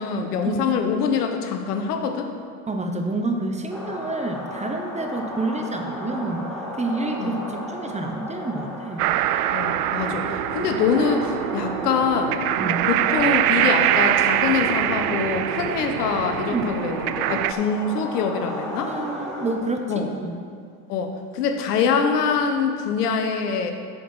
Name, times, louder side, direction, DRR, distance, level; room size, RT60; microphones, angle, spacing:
voice 1, 0.0-2.3 7.2-7.4 9.5-10.2 10.5-12.4 12.9-18.9 19.9-20.1 20.9-23.7, left 6 dB, 85° left, 5 dB, 1.1 m, -24 dB
voice 2, 2.7-6.5 6.8-9.1 12.6-12.8 16.5-16.7 18.9-20.4, right 2 dB, 15° right, 4 dB, 0.9 m, -28 dB
sound 1, 3.7-19.6, left 1 dB, ahead, 2.0 m, -35 dB
sound 2, 9.0-17.5, right 13 dB, 75° right, 0.5 m, -24 dB
7.7 x 6.8 x 5.4 m, 2.2 s
hypercardioid pair, 90°, 45 cm